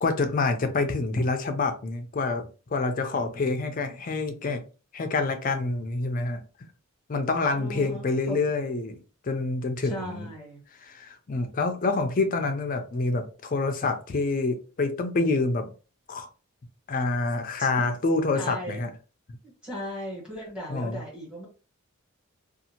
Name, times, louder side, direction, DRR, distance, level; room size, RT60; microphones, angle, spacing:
voice 1, 0.0-4.6 4.9-6.4 7.1-9.0 9.2-10.3 10.8-15.7 16.1-16.3 16.9-18.9 20.7-21.0, left 3 dB, 40° left, 7 dB, 0.4 m, -27 dB
voice 2, 7.5-8.4 9.8-10.6 17.6-18.0 18.3-18.9 19.4-21.5, equal, 5° right, -5 dB, 1.4 m, -37 dB
2.7 x 2.4 x 2.8 m, 0.35 s
head